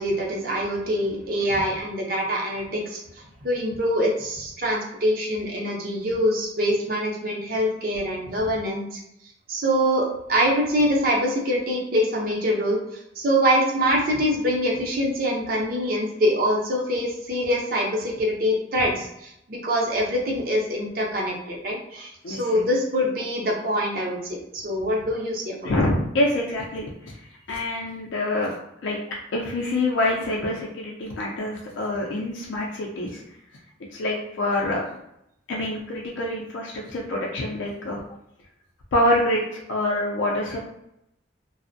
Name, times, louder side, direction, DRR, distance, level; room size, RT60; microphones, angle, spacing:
voice 1, 0.0-3.0 3.4-9.0 9.5-12.8 13.2-25.7, equal, 50° right, -1 dB, 0.6 m, -24 dB
voice 2, 22.2-22.6 25.6-28.5 28.8-33.2 33.9-34.8 35.5-38.0 38.9-40.6, left 1 dB, 90° left, -2 dB, 0.4 m, -26 dB
2.4 x 2.0 x 2.5 m, 0.80 s
head